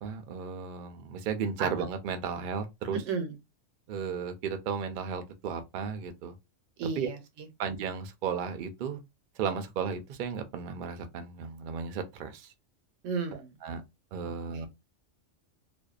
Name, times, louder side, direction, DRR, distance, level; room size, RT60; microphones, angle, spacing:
voice 1, 0.0-3.0 3.9-6.4 7.0-7.1 7.6-9.0 9.4-12.5 13.6-13.8 14.1-14.7, right 6 dB, 60° right, 0.5 m, -34 dB
voice 2, 2.9-3.3 6.8-7.5 13.0-13.6 14.2-14.7, right 5 dB, 90° right, 1.0 m, -34 dB
2.6 x 2.2 x 2.3 m
omnidirectional pair, 1.3 m